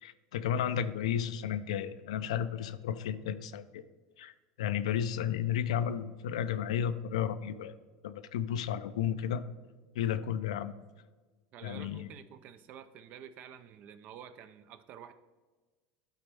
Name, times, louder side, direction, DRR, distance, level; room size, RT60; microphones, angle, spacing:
voice 1, 0.0-3.8 4.2-4.3 4.6-7.7 8.0-9.4 9.9-10.7 11.6-12.1, left 9 dB, 90° left, 12 dB, 0.4 m, -33 dB
voice 2, 11.5-15.1, right 9 dB, 50° right, 11 dB, 0.5 m, -49 dB
11.5 x 4.1 x 3.5 m, 1.3 s
supercardioid pair, 110°, 3 cm